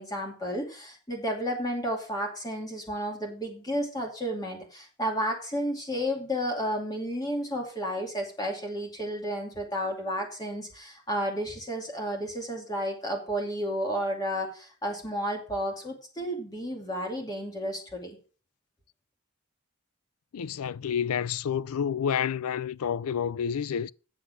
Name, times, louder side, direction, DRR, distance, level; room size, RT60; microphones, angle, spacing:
voice 1, 0.0-18.2, equal, 15° left, 2.4 m, -32 dB
voice 2, 20.3-23.9, left 8 dB, 85° left, 0.4 m, -29 dB
8.6 x 7.1 x 6.2 m
head